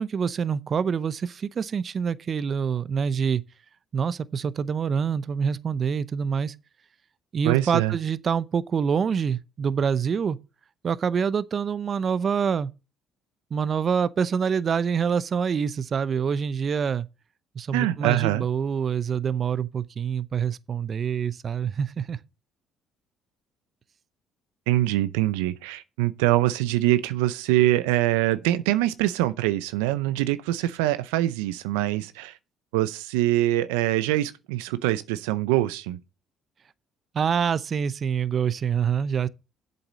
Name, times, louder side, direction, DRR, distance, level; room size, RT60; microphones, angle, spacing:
voice 1, 0.0-3.4 3.9-6.5 7.3-10.4 10.8-12.7 13.5-17.1 17.5-22.2 37.1-39.3, right 7 dB, 45° right, 0.6 m, -26 dB
voice 2, 7.4-7.9 17.7-18.4 24.7-32.4 32.7-36.0, right 15 dB, 85° right, 0.5 m, -24 dB
7.9 x 7.0 x 6.2 m
supercardioid pair, 65°, 0 cm